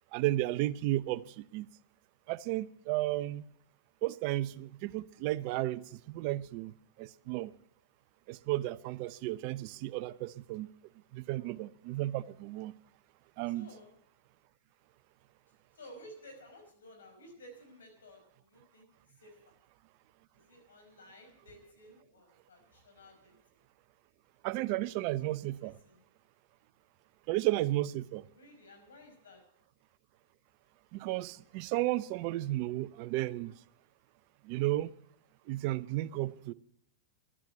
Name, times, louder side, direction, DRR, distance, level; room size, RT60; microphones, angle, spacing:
voice 1, 0.1-1.7 2.3-3.4 4.0-7.5 8.3-10.7 11.1-12.7 13.4-13.7 24.4-25.7 27.3-28.2 30.9-33.5 34.4-34.9 35.5-36.5, right 16 dB, 50° right, 0.7 m, -33 dB
voice 2, 13.5-13.9 15.7-18.9 19.2-19.4 20.3-23.3 25.2-25.4 25.6-26.0 28.3-29.4, equal, 85° left, 5.4 m, -54 dB
12.5 x 10.5 x 8.1 m
hypercardioid pair, 120°, 0 cm